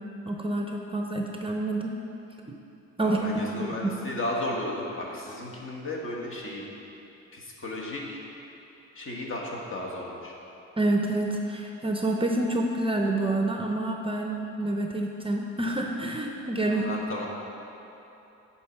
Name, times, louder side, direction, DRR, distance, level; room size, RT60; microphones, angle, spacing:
voice 1, 0.3-2.0 2.5-2.6 3.0-3.2 3.6-3.9 10.8-16.8, right 2 dB, 20° right, 1 dB, 0.6 m, -28 dB
voice 2, 3.0-6.6 7.3-8.2 8.9-10.3 16.7-17.3, left 1 dB, 45° left, -2 dB, 1.5 m, -34 dB
9.1 x 4.4 x 5.8 m, 3.0 s
cardioid pair, 90°, 30 cm